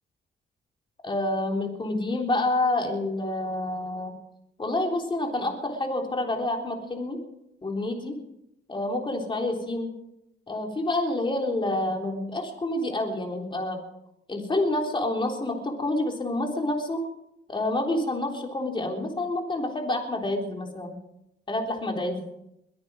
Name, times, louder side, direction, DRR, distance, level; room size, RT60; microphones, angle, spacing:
voice 1, 1.0-4.1 4.6-7.2 7.6-8.2 8.7-9.9 10.5-13.8 14.3-17.0 17.5-20.9 21.5-22.2, left 2 dB, 25° left, 1 dB, 3.7 m, -28 dB
22.5 x 9.4 x 6.3 m, 0.83 s
cardioid pair, 90°, 20 cm